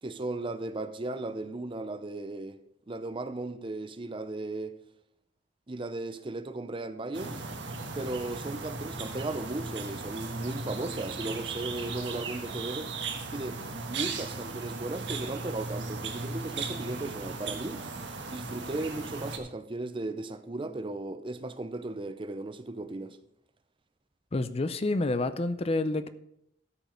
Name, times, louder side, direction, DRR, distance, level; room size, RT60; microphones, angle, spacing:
voice 1, 0.0-2.6 2.9-4.7 5.7-7.4 7.9-12.9 13.3-17.8 18.3-23.2, right 2 dB, 25° right, 0.6 m, -36 dB
sound 1, 7.1-19.4, right 3 dB, 65° right, 1.4 m, -37 dB
voice 2, 24.3-26.1, left 2 dB, 30° left, 0.5 m, -28 dB
13.0 x 5.3 x 6.4 m
head